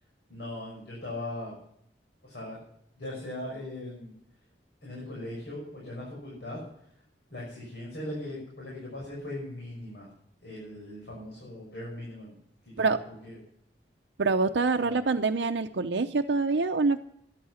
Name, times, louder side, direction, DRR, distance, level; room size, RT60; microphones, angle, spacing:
voice 1, 0.3-1.5 2.2-2.6 2.9-4.1 4.8-6.6 7.3-10.1 10.4-12.3 12.6-13.3 14.8-15.0, left 1 dB, 70° left, -4 dB, 6.4 m, -39 dB
voice 2, 14.2-17.0, right 4 dB, 75° right, 6 dB, 0.6 m, -25 dB
13.5 x 11.5 x 5.7 m, 0.71 s
head